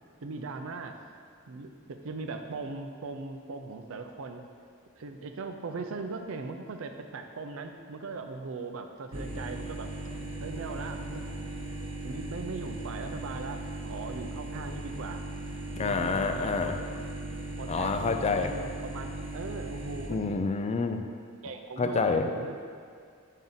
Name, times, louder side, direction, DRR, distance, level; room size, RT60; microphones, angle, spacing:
voice 1, 0.2-1.0 1.5-4.5 5.0-9.9 10.4-11.3 12.0-15.2 15.8-16.7 17.6-20.3 21.4-22.6, right 3 dB, 70° right, 6 dB, 0.5 m, -39 dB
sound 1, 9.1-20.1, right 1 dB, 25° right, 1.0 m, -38 dB
voice 2, 15.7-16.8 17.7-18.5 20.1-21.0 21.8-22.3, left 4 dB, 30° left, 6 dB, 0.3 m, -28 dB
7.4 x 5.4 x 3.9 m, 2.2 s
head